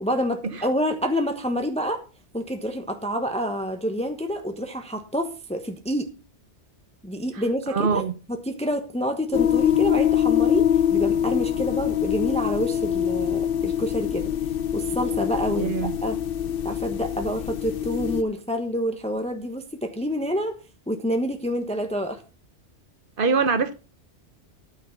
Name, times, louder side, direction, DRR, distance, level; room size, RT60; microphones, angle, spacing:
voice 1, 0.0-2.0 2.3-6.1 7.0-8.0 8.3-14.3 14.7-16.2 16.6-20.5 20.9-22.2, equal, 5° left, 1.1 m, -28 dB
voice 2, 7.7-8.1 15.6-15.9 23.2-23.7, right 5 dB, 50° right, 1.0 m, -23 dB
sound 1, 9.3-18.2, left 10 dB, 55° left, 0.9 m, -24 dB
12.5 x 6.4 x 5.8 m
omnidirectional pair, 1.2 m